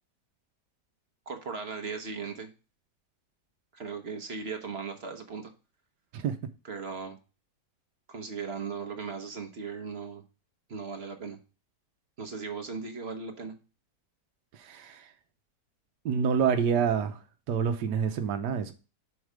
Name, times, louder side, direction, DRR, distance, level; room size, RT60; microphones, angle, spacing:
voice 1, 1.3-2.5 3.7-5.5 6.6-7.2 8.1-10.2 10.7-11.4 12.2-13.6, right 5 dB, 45° right, 1.0 m, -37 dB
voice 2, 14.6-15.1 16.0-17.2 17.5-18.7, right 7 dB, 80° right, 1.3 m, -27 dB
6.4 x 4.7 x 4.9 m
omnidirectional pair, 1.8 m